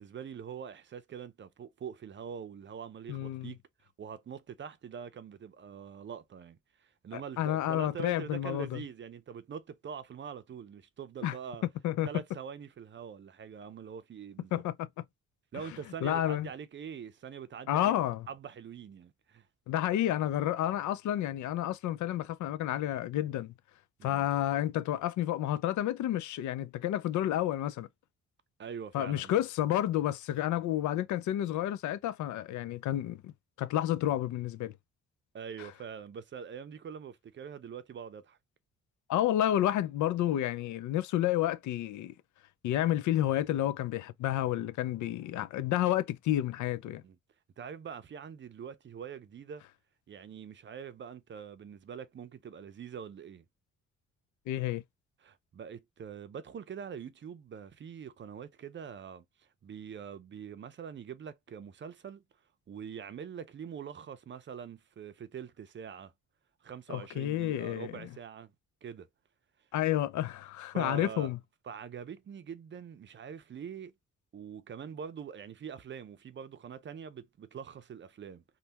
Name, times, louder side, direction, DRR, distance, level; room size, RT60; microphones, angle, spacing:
voice 1, 0.0-11.6 12.0-14.6 15.5-17.9 18.3-19.5 24.0-24.3 28.6-29.3 35.3-38.4 47.0-47.2 47.6-49.6 50.1-53.4 55.2-62.2 62.7-66.1 66.6-68.5 68.8-69.1 70.7-71.3 71.7-73.9 74.3-78.4, right 7 dB, 40° right, 0.5 m, -44 dB
voice 2, 3.1-3.5 7.1-8.8 11.2-11.4 11.8-12.1 14.5-15.0 16.0-16.5 17.7-18.3 19.7-23.5 24.0-27.9 28.9-33.3 33.6-34.7 39.1-42.1 42.6-47.0 54.5-54.8 66.9-67.9 69.7-71.4, left 12 dB, 75° left, 0.5 m, -30 dB
3.3 x 2.3 x 2.8 m
cardioid pair, 90°, 30 cm